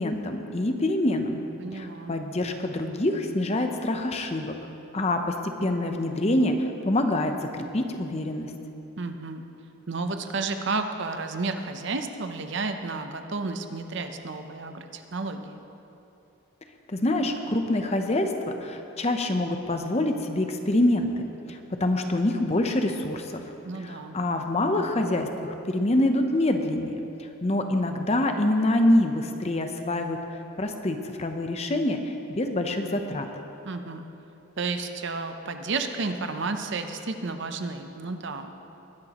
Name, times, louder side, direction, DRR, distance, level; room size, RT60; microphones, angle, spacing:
voice 1, 0.0-1.4 1.7-4.5 4.9-8.5 16.9-21.1 21.5-23.4 23.8-30.2 30.6-33.3, left 1 dB, 30° left, 5 dB, 0.7 m, -26 dB
voice 2, 1.6-2.1 9.0-9.4 9.9-15.6 23.6-24.2 33.6-34.1 34.6-38.5, right 3 dB, 55° right, 7 dB, 0.7 m, -32 dB
21.0 x 10.5 x 3.0 m, 2.9 s
head